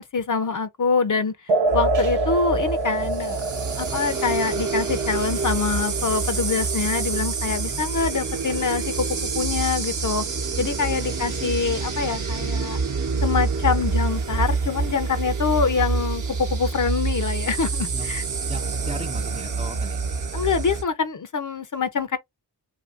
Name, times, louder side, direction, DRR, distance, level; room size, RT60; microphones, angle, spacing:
voice 1, 0.0-3.4 3.8-10.2 10.6-12.8 13.2-18.2 20.3-22.2, left 5 dB, 45° left, 0.7 m, -25 dB
sound 1, 1.5-8.5, right 2 dB, 75° right, 0.8 m, -28 dB
sound 2, 1.7-20.8, right 4 dB, 45° right, 0.9 m, -27 dB
voice 2, 7.5-7.8 11.0-11.2 17.9-18.1 18.5-20.0, right 1 dB, 15° right, 0.5 m, -37 dB
2.8 x 2.7 x 2.5 m
cardioid pair, 45°, 44 cm